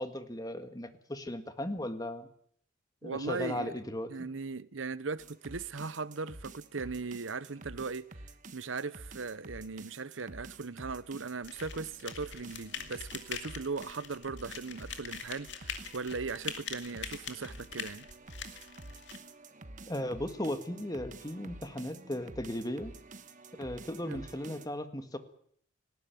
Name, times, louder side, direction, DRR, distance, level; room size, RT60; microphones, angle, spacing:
voice 1, 0.0-2.3 3.0-4.3 19.9-22.9 23.6-25.2, left 1 dB, 20° left, 1.8 m, -36 dB
voice 2, 3.0-3.8 4.1-8.1 8.5-18.1 24.1-24.3, right 4 dB, 90° right, 0.8 m, -38 dB
sound 1, 5.2-24.7, right 2 dB, 40° right, 1.4 m, -49 dB
sound 2, 11.4-19.2, left 8 dB, 65° left, 2.5 m, -43 dB
19.5 x 16.5 x 9.3 m
head